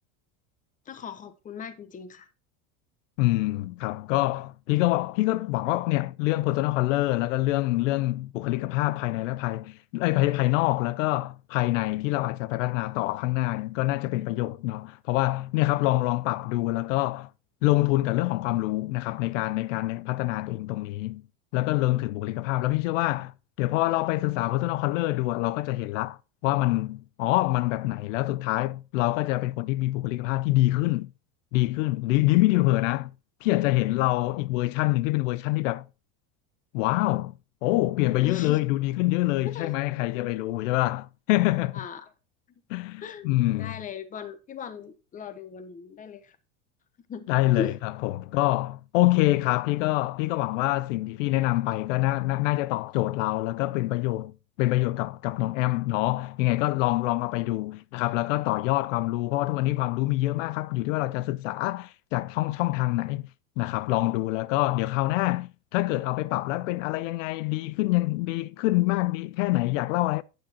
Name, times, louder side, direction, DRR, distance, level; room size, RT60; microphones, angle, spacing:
voice 1, 0.9-2.3 38.2-38.6 39.5-39.7 41.7-42.1 43.0-46.4 47.1-47.8, left 6 dB, 20° left, 1.0 m, -38 dB
voice 2, 3.2-17.3 17.6-21.2 21.5-23.3 23.6-31.1 31.5-33.1 33.4-35.8 36.7-37.3 37.6-41.8 42.7-43.7 47.3-63.3 63.6-70.2, left 18 dB, 85° left, 0.6 m, -26 dB
10.5 x 8.8 x 2.9 m
supercardioid pair, 150°, 37 cm